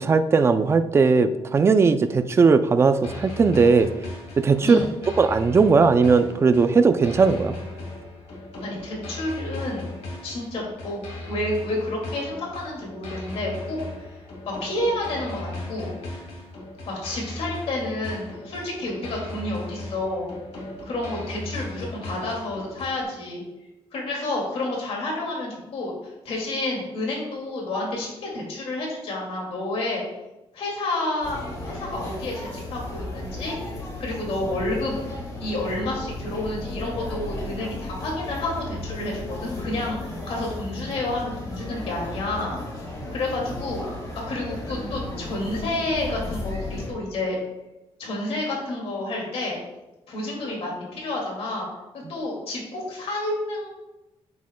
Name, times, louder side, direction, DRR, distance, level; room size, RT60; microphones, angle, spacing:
voice 1, 0.0-3.9 4.4-4.8 5.2-7.6, right 4 dB, 25° right, 9 dB, 0.4 m, -18 dB
sound 1, 3.0-23.0, left 2 dB, 80° left, 1.9 m, -37 dB
voice 2, 4.6-5.0 8.6-9.9 10.2-14.1 14.5-15.9 16.9-20.3 20.8-23.4 23.9-25.9 26.2-30.0 30.5-34.9 35.4-42.6 43.1-43.8 44.1-47.4 48.0-49.6 50.1-51.7 51.9-53.7, left 2 dB, 65° left, -2 dB, 2.2 m, -30 dB
sound 2, 31.2-46.9, left 1 dB, 40° left, 2.4 m, -34 dB
9.3 x 7.4 x 2.2 m, 1.0 s
wide cardioid pair, 175°, 11 cm